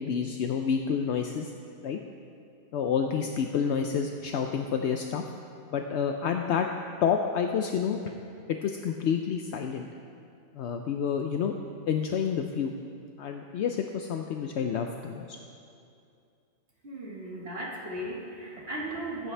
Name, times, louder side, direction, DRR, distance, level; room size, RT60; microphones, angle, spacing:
voice 1, 0.0-1.5 1.8-2.0 2.7-5.2 5.7-6.7 7.0-8.1 8.5-9.9 10.5-11.5 11.9-12.7 13.2-15.2, left 7 dB, 70° left, 4 dB, 0.9 m, -29 dB
voice 2, 16.8-19.3, right 1 dB, 55° right, -3 dB, 2.0 m, -36 dB
23.5 x 8.2 x 3.3 m, 2.5 s
omnidirectional pair, 1.2 m